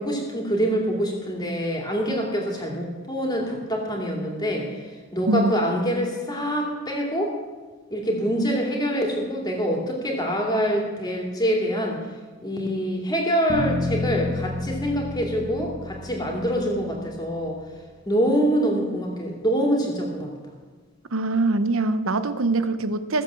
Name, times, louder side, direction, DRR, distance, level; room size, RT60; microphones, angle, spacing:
voice 1, 0.0-7.4 7.9-12.0 12.4-17.6 18.0-20.3, equal, 20° left, 0 dB, 2.7 m, -25 dB
sound 1, 13.5-17.6, left 2 dB, 40° right, 1.4 m, -31 dB
voice 2, 21.1-23.2, right 2 dB, 65° right, 12 dB, 0.8 m, -23 dB
16.0 x 7.7 x 7.5 m, 1.4 s
head